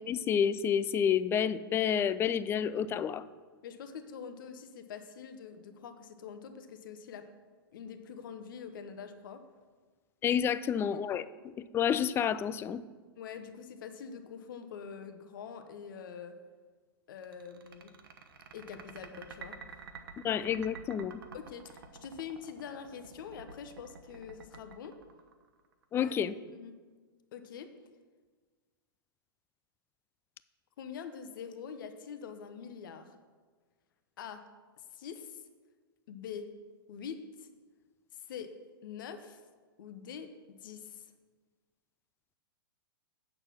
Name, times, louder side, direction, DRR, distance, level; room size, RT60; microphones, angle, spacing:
voice 1, 0.1-3.2 10.2-12.8 20.2-21.1 25.9-26.3, left 8 dB, 20° left, 15 dB, 0.3 m, -29 dB
voice 2, 3.6-7.2 7.7-9.4 10.2-10.4 10.9-11.0 13.2-16.3 17.1-17.9 18.5-19.6 21.3-24.9 26.0-26.1 26.5-26.7 27.3-27.7 30.8-33.1 34.2-34.4 34.9-35.4 36.1-36.5 36.9-37.5 38.3-38.5 38.8-39.4 39.8-40.3 40.6-41.0, left 7 dB, 60° left, 8 dB, 1.0 m, -44 dB
sound 1, 17.2-25.8, right 5 dB, 70° right, 1.1 m, -49 dB
8.4 x 6.6 x 5.9 m, 1.5 s
hypercardioid pair, 110°, 12 cm